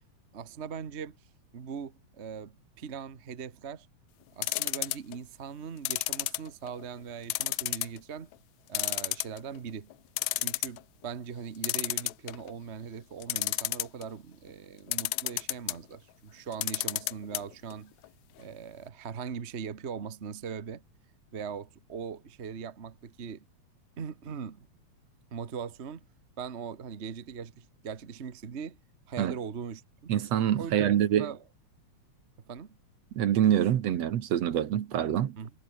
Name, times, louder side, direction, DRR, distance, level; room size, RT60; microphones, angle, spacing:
voice 1, 0.3-1.2 1.5-3.9 4.4-8.3 8.7-9.9 10.3-17.9 18.4-20.8 21.3-23.4 24.0-24.7 25.3-26.1 26.4-28.8 29.1-30.1 30.6-31.4 32.5-32.8 35.4-35.5, right 6 dB, 40° right, 0.9 m, -40 dB
sound 1, 4.4-5.2 5.9-6.8 7.3-8.0 8.3-8.4 8.7-9.6 9.9-10.0 10.2-10.8 11.6-12.5 13.2-14.0 14.9-15.8 16.5-17.4 17.7-17.8 18.0-18.1, left 18 dB, 80° left, 1.9 m, -30 dB
voice 2, 30.1-31.3 33.1-35.4, right 10 dB, 65° right, 2.4 m, -25 dB
omnidirectional pair, 3.3 m